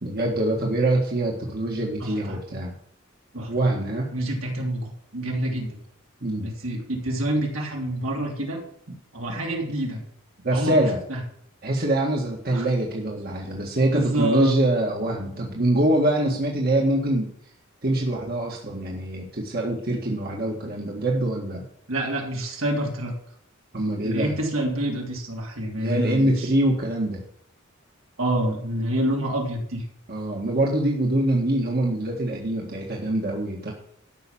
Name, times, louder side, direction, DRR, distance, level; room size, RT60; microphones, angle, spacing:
voice 1, 0.0-2.7 3.5-4.1 6.2-6.5 10.4-11.0 11.6-17.3 17.8-21.6 23.7-24.3 25.7-27.2 30.1-33.7, right 1 dB, 50° right, -1 dB, 1.8 m, -24 dB
voice 2, 2.0-2.4 3.3-3.5 4.1-5.8 6.4-8.6 9.1-10.0 10.5-10.7 11.1-11.2 12.5-12.6 13.9-14.6 21.9-23.1 24.0-26.5 28.2-29.8, right 1 dB, 80° right, -1 dB, 3.2 m, -27 dB
13.0 x 5.9 x 7.4 m, 0.69 s
head